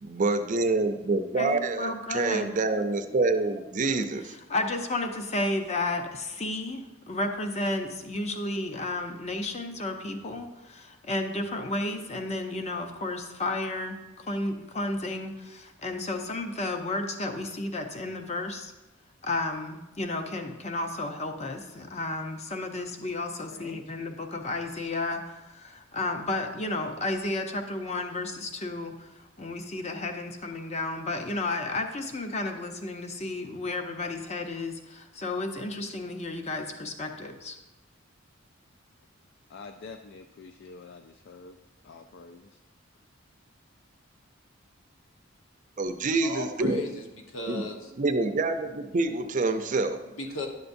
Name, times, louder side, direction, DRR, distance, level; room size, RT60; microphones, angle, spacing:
voice 1, 0.0-4.3 45.8-46.8 47.5-47.7 48.0-50.0, right 3 dB, 40° right, 7 dB, 0.5 m, -27 dB
voice 2, 1.3-2.5 4.5-18.7 19.2-37.6, left 2 dB, 35° left, 5 dB, 0.7 m, -32 dB
voice 3, 23.5-24.0 39.5-41.6 41.8-42.6, left 4 dB, 60° left, 6 dB, 0.3 m, -46 dB
voice 4, 46.2-47.9 50.1-50.5, left 2 dB, 85° left, 2 dB, 1.1 m, -36 dB
10.5 x 6.7 x 2.6 m, 1.0 s
head